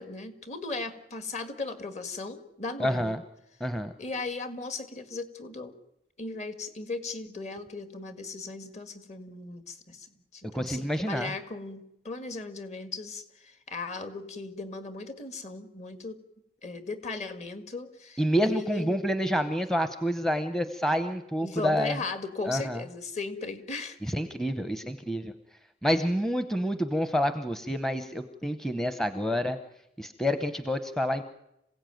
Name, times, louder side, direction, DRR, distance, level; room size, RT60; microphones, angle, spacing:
voice 1, 0.0-3.2 4.0-5.7 6.2-16.2 16.6-19.0 21.4-24.1, left 3 dB, 40° left, 9 dB, 1.9 m, -37 dB
voice 2, 2.8-3.2 3.6-3.9 10.5-11.3 18.2-22.0 22.5-22.8 24.0-25.3 25.8-29.6 30.0-31.2, equal, 5° left, 9 dB, 0.8 m, -28 dB
27.0 x 16.5 x 9.2 m, 0.87 s
head